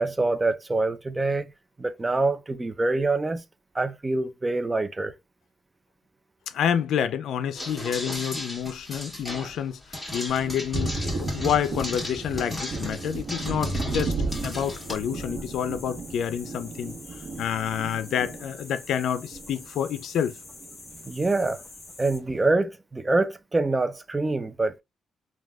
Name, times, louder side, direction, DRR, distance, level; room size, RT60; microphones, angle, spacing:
voice 1, 0.0-1.5 1.8-3.4 3.7-5.1 21.0-21.6 22.0-24.8, right 2 dB, 20° right, 0.4 m, -25 dB
voice 2, 6.5-9.8 10.1-14.1 14.4-16.9 17.4-20.4, left 9 dB, 75° left, 0.4 m, -28 dB
sound 1, 7.6-14.9, left 1 dB, 5° left, 1.7 m, -36 dB
Thunder, 10.3-20.0 20.4-21.5, right 2 dB, 60° right, 0.9 m, -34 dB
sound 2, 14.3-22.2, left 3 dB, 35° left, 1.4 m, -46 dB
3.3 x 2.3 x 2.2 m
cardioid pair, 90°, 0 cm